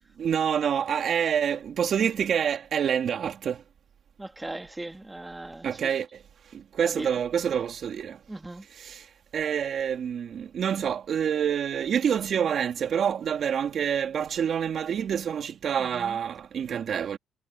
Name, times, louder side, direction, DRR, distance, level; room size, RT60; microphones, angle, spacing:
voice 1, 0.2-3.6 5.6-6.1 6.7-8.2 8.8-9.0 9.3-17.2, right 8 dB, 60° right, 3.0 m, -27 dB
voice 2, 4.2-5.9 6.8-7.1 8.3-8.6 15.8-16.2, right 2 dB, 15° right, 2.0 m, -38 dB
cardioid pair, 105°, 0 cm